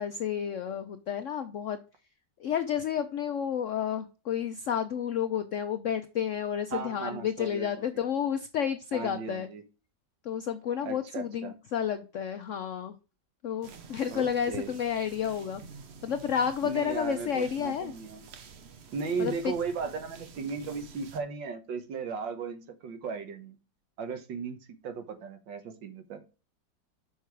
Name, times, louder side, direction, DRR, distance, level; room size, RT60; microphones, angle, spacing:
voice 1, 0.0-1.8 2.4-9.5 10.2-12.9 13.4-15.6 16.0-17.9 19.2-19.5, left 8 dB, 75° left, 0.7 m, -31 dB
voice 2, 6.7-8.1 8.9-9.6 10.8-11.5 14.1-14.7 16.6-18.2 18.9-23.6 24.0-26.2, right 5 dB, 85° right, 1.8 m, -36 dB
sound 1, 13.6-21.2, right 5 dB, 55° right, 0.7 m, -49 dB
6.1 x 5.6 x 4.6 m
omnidirectional pair, 2.0 m